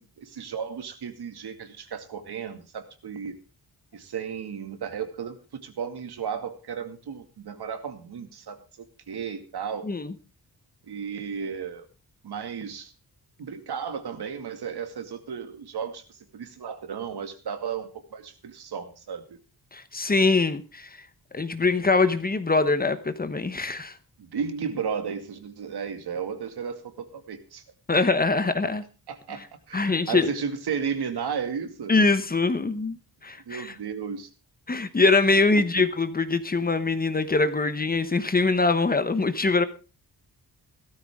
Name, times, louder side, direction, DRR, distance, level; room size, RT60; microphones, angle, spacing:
voice 1, 0.0-3.4 3.9-5.4 5.6-9.9 10.9-11.9 12.2-12.9 13.4-19.4 24.2-27.6 29.1-29.4 29.7-31.9 33.5-34.3 35.6-35.7, right 6 dB, 80° right, 8 dB, 2.3 m, -34 dB
voice 2, 9.8-10.1 19.7-20.9 21.3-23.9 27.9-28.8 29.7-30.3 31.9-33.0 33.2-33.7 34.7-39.6, left 3 dB, 25° left, 11 dB, 1.0 m, -23 dB
16.5 x 13.5 x 3.7 m, 0.33 s
wide cardioid pair, 170°, 39 cm